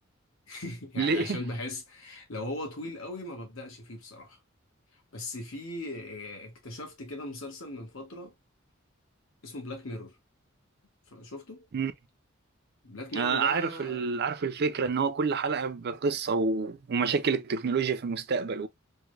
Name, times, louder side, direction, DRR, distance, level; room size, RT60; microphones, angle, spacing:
voice 1, 0.5-4.4 5.1-8.3 9.4-10.2 11.1-11.6 12.8-14.1, left 2 dB, 80° left, 1.4 m, -39 dB
voice 2, 1.0-1.4 11.7-11.9 13.1-18.7, right 5 dB, 55° right, 0.5 m, -28 dB
3.5 x 2.1 x 3.2 m
head